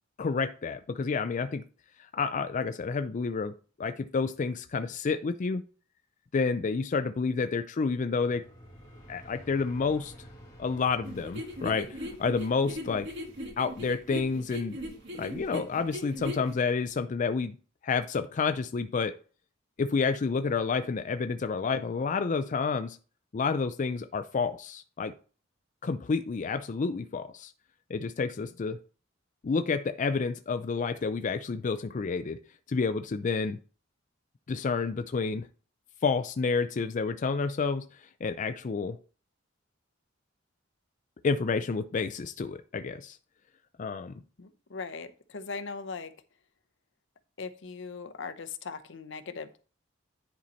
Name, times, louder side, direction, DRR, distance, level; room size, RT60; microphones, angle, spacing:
voice 1, 0.2-1.6 2.1-3.5 3.8-5.6 6.3-8.4 9.1-10.1 10.6-13.1 13.6-14.8 15.1-17.6 17.8-19.2 19.8-23.0 23.3-25.1 25.8-27.5 27.9-28.8 29.4-32.4 32.7-33.6 34.5-35.5 36.0-37.9 38.2-39.0 41.2-43.2 43.8-44.1, left 4 dB, 40° left, 9 dB, 0.4 m, -29 dB
sound 1, 8.2-17.0, equal, 20° left, 2.2 m, -53 dB
sound 2, 11.1-16.5, equal, 65° right, 1.9 m, -39 dB
voice 2, 44.4-46.1 47.4-49.6, left 4 dB, 65° left, 10 dB, 0.8 m, -39 dB
10.5 x 4.1 x 4.3 m, 0.38 s
head